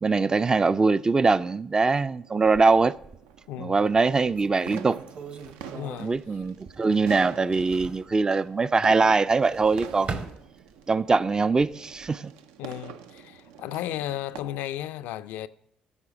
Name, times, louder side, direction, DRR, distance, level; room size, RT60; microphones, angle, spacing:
voice 1, 0.0-2.9 3.6-5.0 6.0-10.1 10.9-12.3, right 4 dB, 25° right, 0.3 m, -22 dB
sound 1, 2.0-14.4, right 8 dB, 85° right, 0.5 m, -45 dB
sound 2, 2.4-3.4 3.9-4.0 4.4-7.0 7.3-8.1 9.3-11.0 11.5-12.1, right 4 dB, 50° right, 1.1 m, -40 dB
voice 2, 3.5-3.8 5.7-6.1 12.6-15.5, left 12 dB, 80° left, 0.4 m, -34 dB
12.5 x 4.9 x 6.0 m
supercardioid pair, 65°, 3 cm